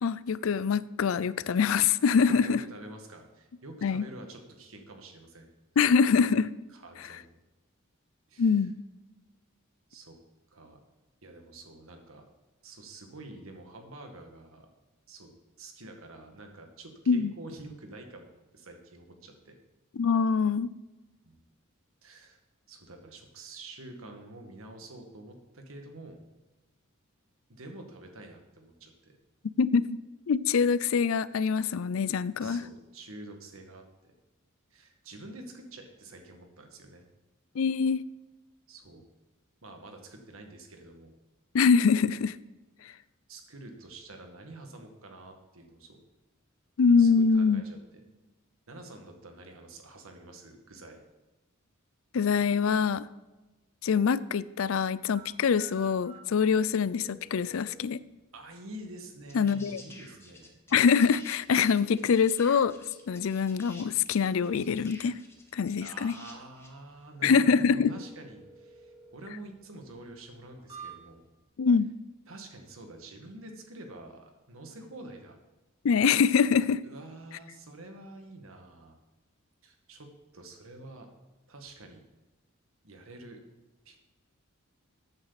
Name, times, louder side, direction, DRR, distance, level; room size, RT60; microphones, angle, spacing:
voice 1, 0.0-2.6 3.8-4.0 5.8-6.5 8.4-8.7 17.1-17.3 20.0-20.7 29.6-30.0 30.3-32.6 37.6-38.0 41.5-42.4 46.8-47.6 52.1-53.1 53.8-58.0 59.3-59.8 60.7-62.7 63.1-65.2 65.5-66.1 67.2-67.9 71.6-71.9 75.8-76.8, left 6 dB, 70° left, 0.4 m, -24 dB
voice 2, 2.3-5.5 6.7-7.3 8.3-8.7 9.9-10.2 10.5-10.8 11.2-12.3 12.6-14.7 15.1-15.3 15.6-19.6 21.2-21.4 22.0-22.4 22.7-26.2 27.5-29.2 32.4-33.8 34.7-37.1 38.7-39.0 39.6-41.1 42.8-43.0 43.3-46.0 47.0-48.0 48.7-51.0 58.3-60.6 65.8-71.2 72.3-75.4 76.8-79.0 79.6-81.1 81.5-82.0 82.8-83.4 83.9-84.0, right 2 dB, 75° right, 1.9 m, -47 dB
sound 1, 54.7-71.4, right 3 dB, 25° right, 3.1 m, -55 dB
sound 2, 58.7-58.8 59.3-66.8 68.0-68.1, left 2 dB, 10° left, 1.5 m, -51 dB
14.0 x 9.0 x 4.1 m
head